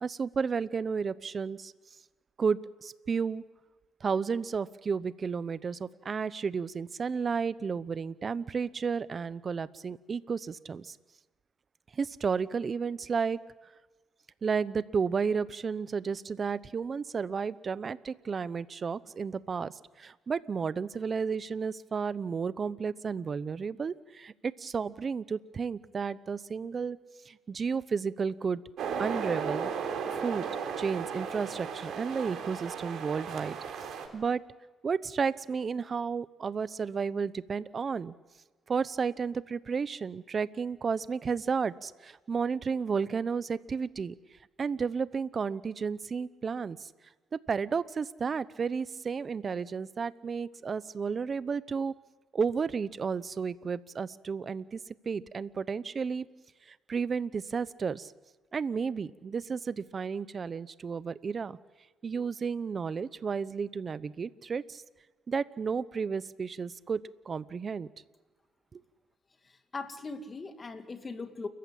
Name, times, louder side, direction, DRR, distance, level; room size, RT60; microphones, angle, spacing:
voice 1, 0.0-1.7 2.4-3.4 4.0-11.0 11.9-13.4 14.4-19.7 20.0-27.0 27.3-28.6 29.0-29.7 30.1-30.4 30.8-33.6 34.1-34.4 34.8-38.1 38.7-44.1 44.6-46.9 47.3-51.9 52.3-54.8 55.1-56.3 56.7-58.1 58.5-61.6 62.0-64.8 65.3-67.0 67.3-67.9 68.7-68.8, right 5 dB, 40° right, 17 dB, 0.8 m, -32 dB
sound 1, 28.8-34.1, right 6 dB, 75° right, 4.0 m, -35 dB
voice 2, 69.4-71.5, left 3 dB, 30° left, 8 dB, 2.2 m, -40 dB
29.5 x 14.5 x 8.7 m, 1.2 s
cardioid pair, 90°, 0 cm